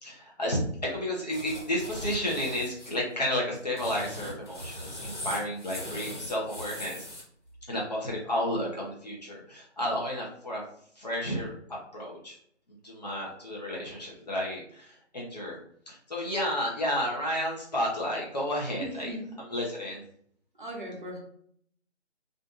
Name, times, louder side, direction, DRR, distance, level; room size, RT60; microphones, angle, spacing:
voice 1, 0.0-7.1 7.7-10.6 11.0-11.5 11.9-12.4 12.8-15.6 15.9-19.1 19.5-20.0, left 1 dB, 35° left, -3 dB, 0.6 m, -32 dB
sound 1, 1.3-3.0 3.6-7.2, left 1 dB, 85° left, 1.2 m, -39 dB
voice 2, 18.8-19.3 20.5-21.2, right 1 dB, 45° right, 0 dB, 0.6 m, -38 dB
2.5 x 2.4 x 2.4 m, 0.64 s
figure-of-eight pair, 155°, 35 cm